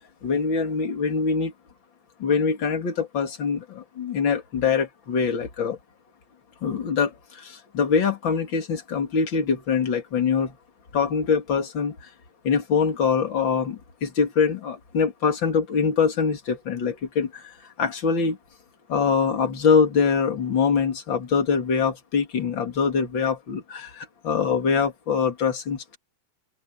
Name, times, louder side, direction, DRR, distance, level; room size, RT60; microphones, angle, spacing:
voice 1, 0.2-1.5 2.2-5.8 6.6-10.6 10.9-12.1 12.4-18.4 18.9-26.0, left 5 dB, 40° left, 3.2 m, -24 dB
open air
omnidirectional pair, 3.6 m